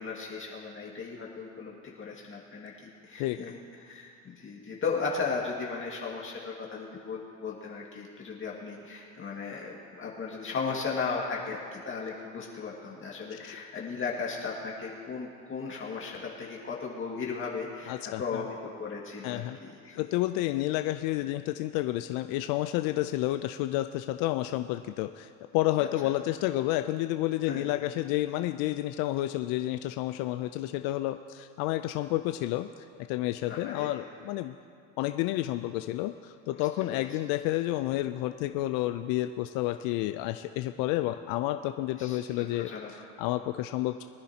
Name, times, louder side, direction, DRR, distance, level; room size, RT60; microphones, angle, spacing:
voice 1, 0.0-20.0 27.5-27.7 33.5-33.9 36.6-36.7 37.0-37.1 42.0-42.9, left 5 dB, 35° left, -3 dB, 2.0 m, -36 dB
voice 2, 17.9-18.4 19.2-19.6 19.9-34.6 35.0-44.0, left 15 dB, 65° left, 8 dB, 0.6 m, -30 dB
22.5 x 10.5 x 2.9 m, 2.4 s
supercardioid pair, 85°, 37 cm